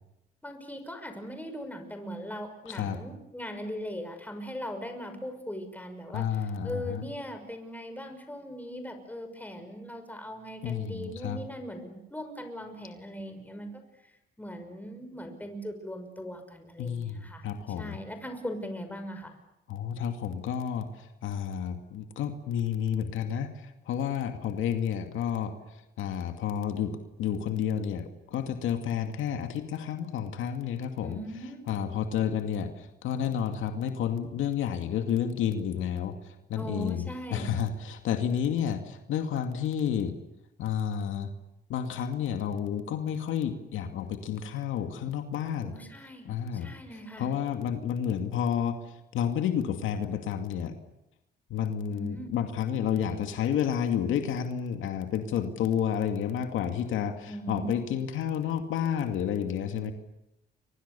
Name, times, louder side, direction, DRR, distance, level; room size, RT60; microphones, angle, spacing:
voice 1, 0.4-14.1 14.4-17.5 17.8-19.4 31.0-31.6 36.5-37.6 45.6-47.3 51.9-52.3 57.3-58.0, equal, 10° left, 6 dB, 6.0 m, -40 dB
voice 2, 2.7-3.0 6.1-7.0 10.6-11.4 16.8-18.0 19.7-20.9 21.2-25.5 26.0-31.2 31.7-36.1 36.5-40.1 40.6-41.3 41.7-45.7 46.3-46.7 47.2-48.8 49.1-50.7 51.5-59.9, left 8 dB, 85° left, 6 dB, 2.3 m, -30 dB
30.0 x 24.0 x 7.0 m, 0.85 s
cardioid pair, 90°, 20 cm